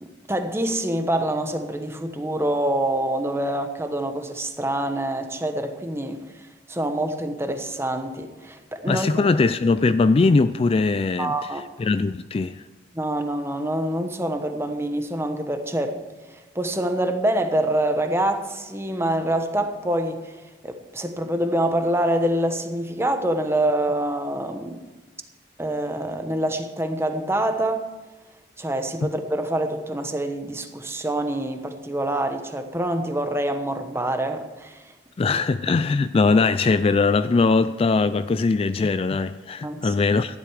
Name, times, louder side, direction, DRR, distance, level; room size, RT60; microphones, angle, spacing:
voice 1, 0.0-6.2 6.7-9.3 11.2-11.6 12.9-16.0 16.3-20.4 20.6-24.8 25.6-27.8 28.6-34.9 39.6-39.9, right 1 dB, 15° right, 1.1 m, -26 dB
voice 2, 8.9-11.3 11.8-12.6 35.2-40.4, left 3 dB, 30° left, 0.3 m, -20 dB
13.5 x 11.0 x 4.8 m
head